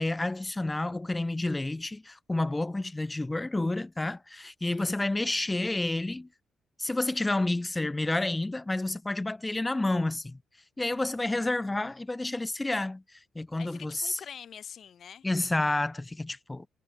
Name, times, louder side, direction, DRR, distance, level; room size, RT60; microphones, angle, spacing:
voice 1, 0.0-6.3 6.8-10.4 10.8-13.0 13.4-14.2 15.2-16.7, left 2 dB, 15° left, 0.3 m, -30 dB
voice 2, 4.7-5.6 13.6-15.3, left 8 dB, 55° left, 4.1 m, -47 dB
cardioid pair, 90°, 0 cm